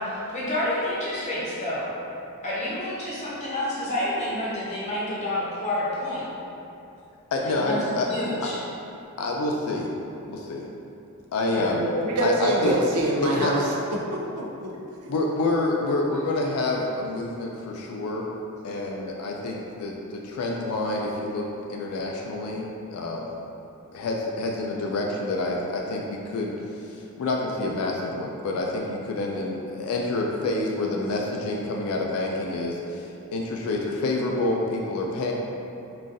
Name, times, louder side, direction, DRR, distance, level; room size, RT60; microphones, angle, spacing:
voice 1, 0.0-1.9 2.4-6.2 7.4-8.6 11.5-11.7, left 1 dB, 30° left, -8 dB, 0.7 m, -29 dB
voice 2, 7.3-8.1 9.2-9.9 10.3-10.7 11.3-11.9 12.2-12.8 13.2-13.5 15.1-18.3 18.6-23.2 23.9-35.3, left 2 dB, 80° left, -1 dB, 0.3 m, -28 dB
voice 3, 11.7-13.6 13.9-15.1, right 1 dB, 90° right, -2 dB, 0.5 m, -26 dB
3.8 x 2.4 x 2.5 m, 2.8 s
head